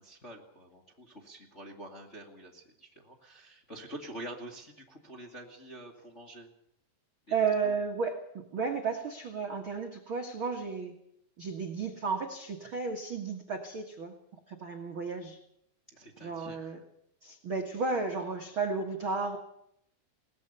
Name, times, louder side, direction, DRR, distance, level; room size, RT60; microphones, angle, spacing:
voice 1, 0.0-6.5 7.3-7.4 7.6-7.7 15.9-16.8, right 1 dB, 25° left, 0 dB, 1.4 m, -47 dB
voice 2, 7.3-11.0 11.4-14.2 14.5-15.4 16.2-16.8 17.2-19.4, right 5 dB, 65° right, 3 dB, 1.2 m, -33 dB
22.0 x 19.0 x 6.8 m, 0.74 s
omnidirectional pair, 5.3 m